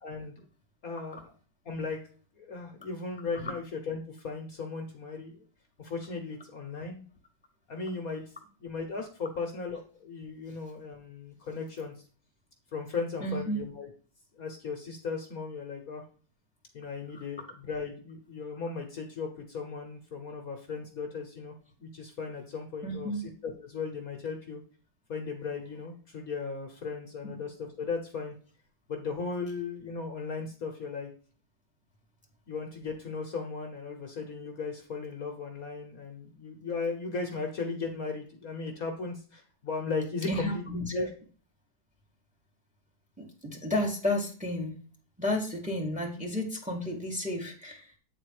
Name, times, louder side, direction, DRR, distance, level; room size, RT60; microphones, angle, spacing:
voice 1, 0.0-0.3 0.8-1.3 1.6-2.0 2.4-5.4 5.8-7.0 7.7-8.2 8.6-11.9 12.7-13.9 14.4-16.0 16.7-21.5 21.8-23.1 23.4-24.6 25.1-28.3 28.9-31.1 32.5-40.6 40.9-41.1, left 4 dB, 55° left, 3 dB, 1.5 m, -36 dB
voice 2, 13.2-13.6 17.1-17.2 22.8-23.3 27.2-27.3 40.3-41.1 43.2-44.8 45.2-48.0, left 1 dB, 5° right, 1 dB, 1.8 m, -32 dB
8.9 x 4.3 x 4.7 m, 0.41 s
omnidirectional pair, 2.0 m